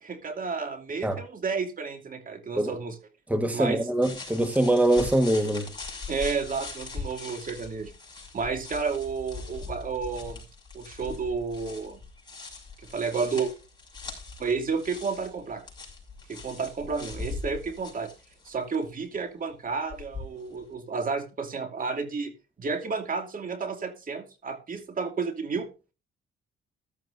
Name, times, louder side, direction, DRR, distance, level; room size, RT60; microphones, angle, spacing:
voice 1, 0.0-2.9 3.5-3.9 6.1-7.9 8.3-10.4 10.7-12.0 12.9-13.5 14.4-15.6 16.3-18.1 18.4-22.3 22.6-25.7, right 5 dB, 45° right, 2.4 m, -31 dB
voice 2, 3.3-5.7, right 1 dB, 5° right, 1.4 m, -23 dB
sound 1, 4.0-18.8 19.9-20.6, left 4 dB, 20° left, 6.0 m, -41 dB
14.5 x 12.0 x 2.6 m
cardioid pair, 90°, 20 cm